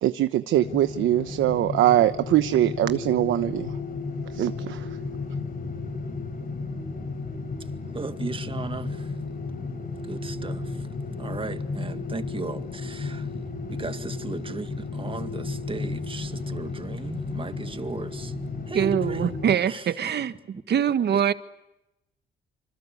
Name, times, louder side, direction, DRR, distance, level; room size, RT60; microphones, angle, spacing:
voice 1, 0.0-3.7 4.3-4.9, right 13 dB, 80° right, 1.1 m, -22 dB
sound 1, 0.5-19.6, left 3 dB, 45° left, 6.5 m, -33 dB
voice 2, 7.6-9.2 10.0-10.9 11.2-13.3 13.7-18.3 18.7-20.1 20.5-20.6 21.1-21.3, right 4 dB, 25° right, 2.1 m, -36 dB
voice 3, 18.7-20.3 20.7-21.3, right 8 dB, 55° right, 1.6 m, -23 dB
26.5 x 26.5 x 8.4 m
cardioid pair, 90°, 20 cm